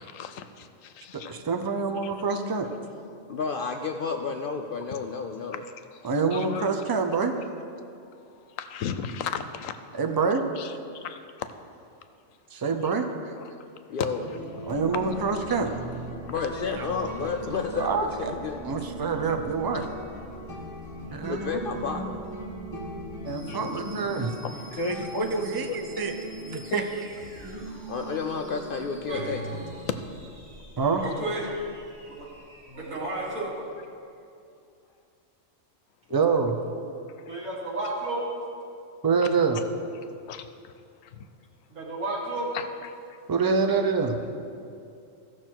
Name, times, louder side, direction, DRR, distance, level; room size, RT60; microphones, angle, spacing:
voice 1, 0.0-1.4 2.0-2.5 5.7-6.7 7.9-9.8 10.2-11.5 12.3-12.4 12.8-12.9 13.4-13.8 14.8-15.0 15.6-15.7 16.5-16.6 19.1-19.3 19.7-19.9 21.0-21.3 23.2-23.6 24.1-25.4 25.7-26.1 26.5-26.8 27.5-27.6 28.2-28.3 29.9-30.0 30.8-31.0 36.1-36.4 37.1-37.4 39.0-39.3 40.2-40.7 41.0-41.3 42.5-43.5, left 8 dB, 85° left, 10 dB, 1.0 m, -38 dB
voice 2, 1.1-2.7 6.0-7.3 10.0-10.4 12.5-13.3 14.7-15.7 16.8-17.1 17.7-18.3 18.6-19.8 21.1-21.6 23.3-24.3 24.8-25.7 26.0-26.1 26.5-26.8 30.8-31.0 36.1-36.5 39.0-39.6 43.3-44.2, right 5 dB, 35° right, 6 dB, 0.3 m, -26 dB
voice 3, 3.3-5.6 13.9-14.2 16.2-18.6 21.3-22.2 27.9-29.4, left 5 dB, 65° left, 5 dB, 0.5 m, -31 dB
sound 1, 14.2-29.7, right 1 dB, 15° left, 2.0 m, -39 dB
sound 2, 14.6-34.0, equal, 70° right, 2.2 m, -49 dB
voice 4, 31.0-31.5 32.2-32.3 32.7-33.7 37.3-38.2 41.7-42.5, right 2 dB, 85° right, -3 dB, 2.3 m, -32 dB
15.0 x 6.2 x 4.5 m, 2.5 s
omnidirectional pair, 1.3 m